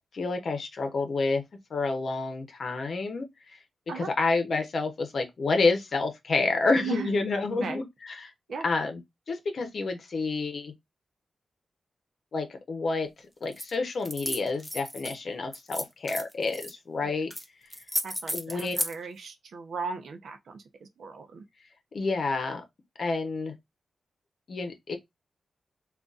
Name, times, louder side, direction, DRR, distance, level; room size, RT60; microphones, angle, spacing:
voice 1, 0.1-1.4 1.7-3.6 4.0-8.3 8.6-9.0 9.3-10.7 12.3-13.1 13.4-17.3 18.3-18.8 21.9-22.6 23.0-23.5 24.5-25.0, left 3 dB, 50° left, 0.8 m, -29 dB
voice 2, 6.8-7.1 7.5-7.8 8.5-8.7 17.0-17.1 18.0-21.4, right 5 dB, 70° right, 0.7 m, -37 dB
sound 1, 13.5-13.7 14.0-15.1 15.5-16.7 17.3-17.4 17.7-18.9, equal, ahead, 0.5 m, -33 dB
3.9 x 2.4 x 2.4 m
wide cardioid pair, 160°, 0 cm